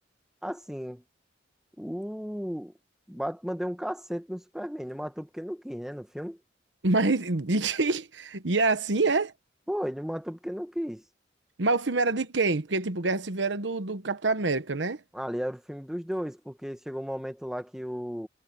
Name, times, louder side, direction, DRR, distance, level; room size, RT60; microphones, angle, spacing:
voice 1, 0.4-1.0 1.8-2.7 3.1-6.4 9.7-11.0 15.1-18.3, equal, 5° right, 1.4 m, -34 dB
voice 2, 6.8-9.3 11.6-15.0, right 3 dB, 75° right, 1.2 m, -26 dB
head